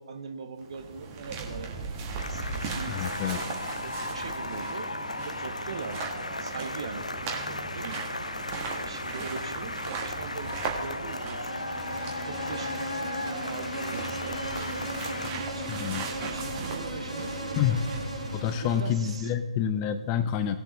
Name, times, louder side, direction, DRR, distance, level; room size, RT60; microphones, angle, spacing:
voice 1, 0.0-3.6 3.8-8.2 8.7-11.7 12.3-17.8 18.6-19.3, right 5 dB, 50° right, 6 dB, 1.1 m, -42 dB
sound 1, 0.6-18.8, right 4 dB, 25° right, 1.6 m, -38 dB
sound 2, 2.2-15.3, left 2 dB, 75° left, 0.6 m, -36 dB
voice 2, 2.9-3.4 15.7-16.1 17.6-17.8 18.3-20.6, left 9 dB, 20° left, 12 dB, 0.4 m, -28 dB
Insect, 11.1-19.4, equal, 90° right, 2.1 m, -37 dB
19.0 x 7.4 x 3.1 m, 1.3 s
figure-of-eight pair, 135°, 4 cm